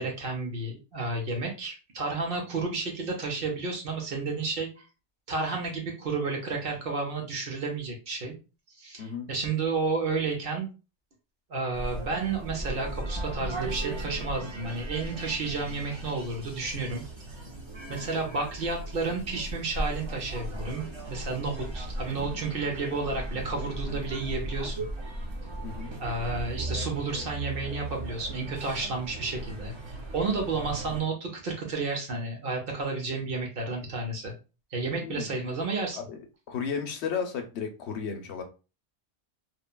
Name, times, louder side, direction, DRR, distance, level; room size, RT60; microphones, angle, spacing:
voice 1, 0.0-4.7 5.3-8.3 8.8-10.7 11.5-17.0 17.3-17.4 17.9-24.9 26.0-29.7 30.1-34.3 34.7-36.0, right 3 dB, 55° right, 1 dB, 0.9 m, -31 dB
sound 1, 11.7-31.0, right 2 dB, 35° right, 0.4 m, -37 dB
voice 2, 35.0-35.3 36.0-36.2 36.5-38.4, left 6 dB, 70° left, 6 dB, 0.8 m, -33 dB
3.0 x 2.2 x 2.2 m, 0.31 s
omnidirectional pair, 1.2 m